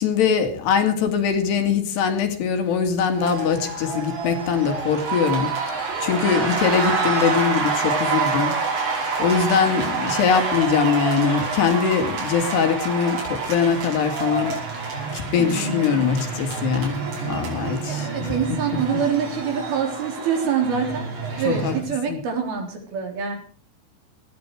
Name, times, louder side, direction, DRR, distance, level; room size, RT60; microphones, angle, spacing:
voice 1, 0.0-5.5 6.0-8.9 9.2-18.3 18.9-19.0 21.5-21.7 22.1-22.2, left 6 dB, 70° left, 6 dB, 4.3 m, -22 dB
sound 1, 3.1-21.8, right 4 dB, 80° right, 7.6 m, -27 dB
voice 2, 9.8-10.2 15.4-16.1 17.9-21.1 21.4-23.4, right 6 dB, 60° right, 4 dB, 5.4 m, -26 dB
18.5 x 14.5 x 4.7 m, 0.42 s
omnidirectional pair, 5.1 m